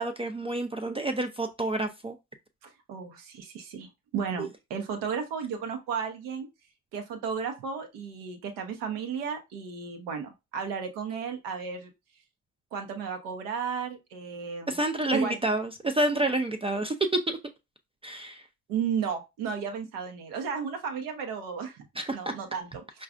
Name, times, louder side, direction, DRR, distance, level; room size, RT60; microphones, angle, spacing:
voice 1, 0.0-2.2 4.4-4.5 14.7-16.9 17.3-17.4 18.0-18.4 22.0-22.2, right 2 dB, 15° right, 0.3 m, -29 dB
voice 2, 2.6-6.5 6.9-11.9 12.7-14.8 15.1-15.4 18.7-21.8 22.1-23.0, right 6 dB, 75° right, 0.9 m, -34 dB
4.7 x 2.4 x 2.4 m
hypercardioid pair, 60°, 40 cm